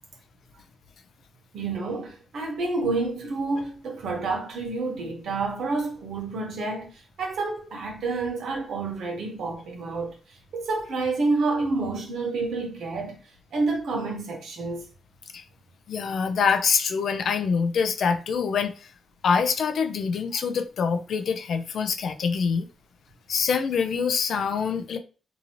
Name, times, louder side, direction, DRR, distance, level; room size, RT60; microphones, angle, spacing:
voice 1, 1.5-13.2 13.5-14.8, right 3 dB, 75° right, 1.0 m, -29 dB
voice 2, 15.9-18.7 19.2-22.7 23.3-25.0, left 6 dB, 65° left, 0.4 m, -25 dB
2.8 x 2.6 x 2.7 m
wide cardioid pair, 135°, 0 cm